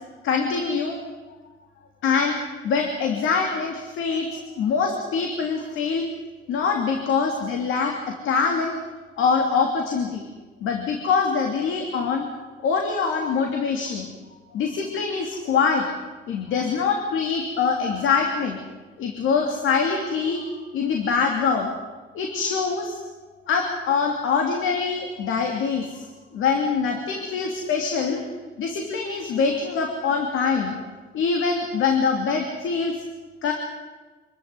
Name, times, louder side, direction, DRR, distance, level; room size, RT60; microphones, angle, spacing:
voice 1, 0.2-1.0 2.0-2.4 2.6-4.3 4.6-6.1 6.5-8.8 9.2-10.3 10.6-12.2 12.6-14.1 14.5-15.8 16.3-18.6 19.0-20.4 20.7-21.7 22.1-23.0 23.5-26.1 26.3-28.2 28.6-30.7 31.1-32.9 33.4-33.5, left 5 dB, 80° left, 2 dB, 2.9 m, -24 dB
26.0 x 14.0 x 9.8 m, 1.3 s
cardioid pair, 90°, 20 cm